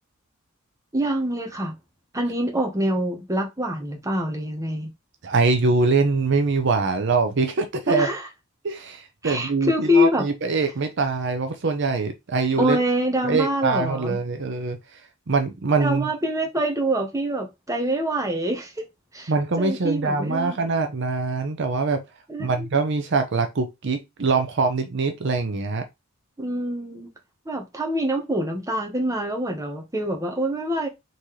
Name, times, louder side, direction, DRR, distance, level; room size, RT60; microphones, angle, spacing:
voice 1, 0.9-1.7 2.1-4.9 7.9-8.3 9.2-10.2 12.6-14.2 15.8-18.8 19.1-19.3 19.6-20.6 22.3-22.7 26.4-27.1 27.4-30.9, equal, 15° right, 1.1 m, -25 dB
voice 2, 5.2-8.1 8.6-12.8 13.2-14.8 15.3-16.1 19.3-22.0 22.4-25.8, right 4 dB, 60° right, 0.6 m, -23 dB
4.2 x 3.8 x 3.1 m
head